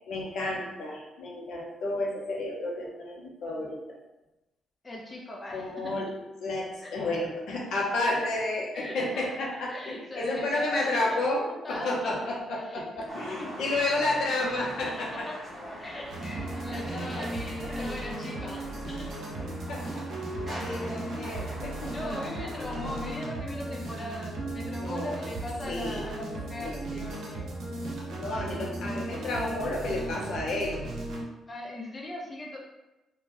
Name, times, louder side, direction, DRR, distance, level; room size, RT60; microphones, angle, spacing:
voice 1, 0.1-4.0 5.5-6.1 6.4-15.3 17.0-17.2 19.4-22.1 24.8-25.2 25.7-26.0 26.6-26.8 28.2-30.8, left 2 dB, 70° left, -2 dB, 0.7 m, -31 dB
voice 2, 4.8-5.9 6.8-7.1 7.7-7.8 8.7-9.2 9.7-10.9 11.5-12.2 12.5-13.1 13.7-14.0 15.0-15.3 15.8-19.1 21.7-27.5 28.3-28.7 31.5-32.6, left 1 dB, 20° left, -2 dB, 0.4 m, -40 dB
sound 1, 13.1-23.1, equal, 25° right, 1.0 m, -42 dB
sound 2, 16.1-31.2, right 1 dB, 65° right, 0.7 m, -36 dB
2.6 x 2.2 x 3.2 m, 0.99 s
cardioid pair, 125°, 0 cm